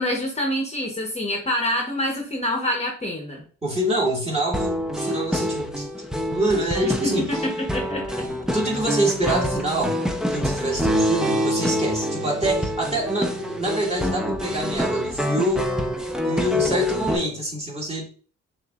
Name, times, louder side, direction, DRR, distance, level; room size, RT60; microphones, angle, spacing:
voice 1, 0.0-3.4 7.0-8.0, left 1 dB, 20° left, 1 dB, 1.0 m, -26 dB
voice 2, 3.6-5.9 6.3-7.3 8.5-9.9 10.3-15.7 16.3-18.1, right 1 dB, 20° right, -3 dB, 1.9 m, -25 dB
sound 1, 4.5-17.2, equal, ahead, 0.6 m, -26 dB
6.5 x 2.7 x 2.4 m, 0.41 s
cardioid pair, 90°, 30 cm